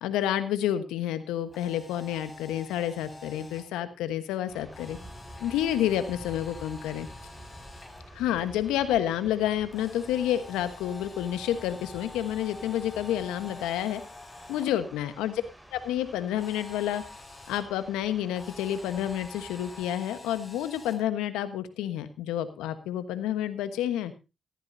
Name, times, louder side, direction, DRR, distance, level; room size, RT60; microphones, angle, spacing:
voice 1, 0.0-5.0 5.4-7.1 8.1-14.0 14.5-15.4 15.7-17.0 17.5-24.1, left 11 dB, 85° left, 11 dB, 1.2 m, -29 dB
Camera, 1.4-3.6 4.7-8.0 9.7-14.7 16.3-17.6 18.3-21.0, left 3 dB, 40° left, 5.9 m, -47 dB
sound 1, 4.5-19.9, right 1 dB, 10° right, 6.8 m, -49 dB
15.0 x 14.5 x 2.7 m, 0.28 s
hypercardioid pair, 40°, 0 cm